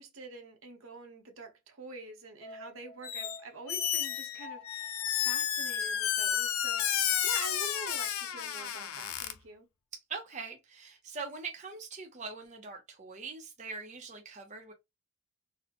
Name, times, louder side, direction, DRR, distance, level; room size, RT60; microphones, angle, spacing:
voice 1, 0.0-9.7, right 3 dB, 75° right, 0.9 m, -46 dB
sound 1, 2.4-6.8 7.1-7.2, left 2 dB, 25° left, 0.7 m, -51 dB
Squeak, 3.0-3.4 3.7-9.3, left 10 dB, 85° left, 0.5 m, -31 dB
voice 2, 10.1-14.7, right 4 dB, 35° right, 0.6 m, -42 dB
4.1 x 2.1 x 2.9 m
head